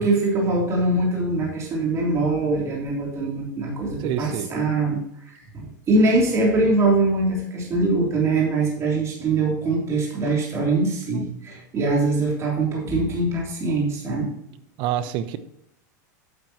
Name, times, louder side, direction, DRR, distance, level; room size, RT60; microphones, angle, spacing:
voice 1, 0.0-14.3, right 2 dB, 30° right, -2 dB, 3.3 m, -23 dB
voice 2, 4.0-4.5 14.8-15.4, right 11 dB, 50° right, 13 dB, 0.9 m, -26 dB
11.0 x 9.0 x 3.0 m, 0.78 s
supercardioid pair, 120°, 10 cm